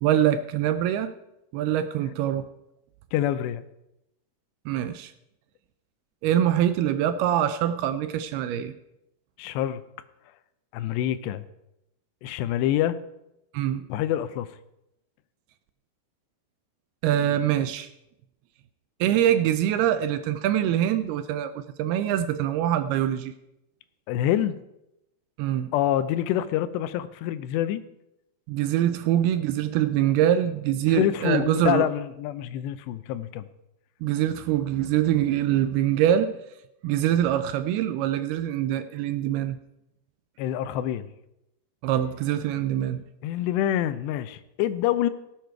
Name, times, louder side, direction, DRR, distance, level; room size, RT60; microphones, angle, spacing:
voice 1, 0.0-1.1 1.5-2.5 4.7-5.1 6.2-8.7 13.5-13.8 17.0-17.9 19.0-23.3 25.4-25.7 28.5-31.9 34.0-36.4 36.8-39.6 41.8-43.0, right 11 dB, 80° right, 11 dB, 2.4 m, -24 dB
voice 2, 3.1-3.6 9.4-9.8 10.7-11.4 12.2-13.0 13.9-14.5 24.1-24.5 25.7-27.8 30.9-33.4 40.4-41.1 43.2-45.1, left 12 dB, 85° left, 13 dB, 2.9 m, -26 dB
18.0 x 9.1 x 4.6 m, 0.86 s
omnidirectional pair, 4.9 m